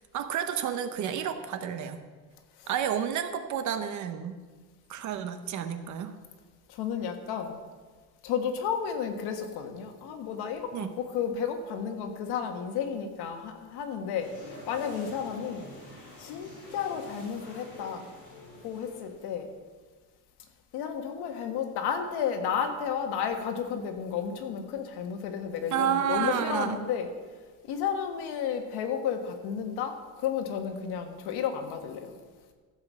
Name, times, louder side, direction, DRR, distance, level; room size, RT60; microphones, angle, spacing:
voice 1, 0.1-2.0 2.7-4.4 4.9-6.1 10.7-10.9 25.7-26.8, right 9 dB, 45° right, 9 dB, 0.8 m, -30 dB
voice 2, 6.7-7.6 8.2-15.7 16.2-18.1 18.6-19.5 20.7-27.1 27.6-32.1, left 7 dB, 75° left, 5 dB, 1.6 m, -32 dB
sound 1, 14.2-19.3, left 1 dB, 30° left, 4.4 m, -47 dB
14.0 x 5.4 x 7.4 m, 1.4 s
cardioid pair, 175°, 39 cm